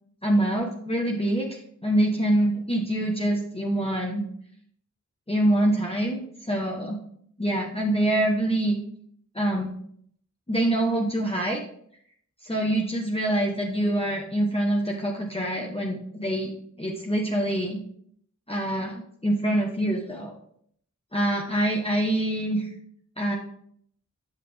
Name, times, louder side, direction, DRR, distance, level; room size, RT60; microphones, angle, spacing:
voice 1, 0.2-4.3 5.3-6.2 6.5-7.0 7.4-8.8 9.3-9.7 10.5-11.6 12.4-16.5 16.8-17.8 18.5-20.3 21.1-22.7 23.2-23.4, right 1 dB, 20° left, -2 dB, 1.1 m, -25 dB
8.3 x 5.8 x 3.5 m, 0.66 s
wide cardioid pair, 45°, 30 cm